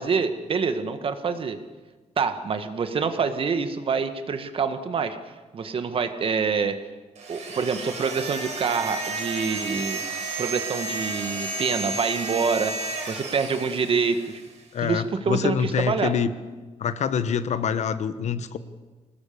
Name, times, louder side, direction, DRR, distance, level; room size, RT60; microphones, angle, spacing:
voice 1, 0.0-1.6 2.2-5.2 5.5-6.8 7.3-10.0 10.4-14.4 14.8-16.1, right 5 dB, 45° right, 9 dB, 1.7 m, -26 dB
sound 1, 7.2-14.5, right 3 dB, 65° right, 5.3 m, -32 dB
voice 2, 14.7-16.3 16.8-18.6, left 7 dB, 65° left, 12 dB, 1.2 m, -25 dB
26.5 x 19.0 x 7.0 m, 1.3 s
wide cardioid pair, 150°, 13 cm